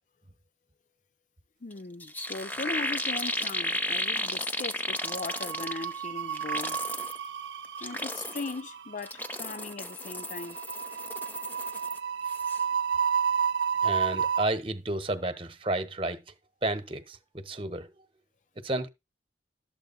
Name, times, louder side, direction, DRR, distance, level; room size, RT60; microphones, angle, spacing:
voice 1, 1.6-6.8 7.8-10.6, left 3 dB, 45° left, 0.5 m, -39 dB
sound 1, 1.7-1.8 2.0-6.0 6.3-7.2 7.6-8.6 9.0-12.0 12.3-12.6, left 1 dB, 10° left, 0.9 m, -34 dB
sound 2, 2.4-3.2 3.4-3.7 4.9-14.4, right 7 dB, 75° right, 0.8 m, -32 dB
voice 2, 13.8-16.3 16.6-18.0 18.6-18.9, right 2 dB, 30° right, 1.1 m, -32 dB
12.5 x 7.6 x 4.1 m
head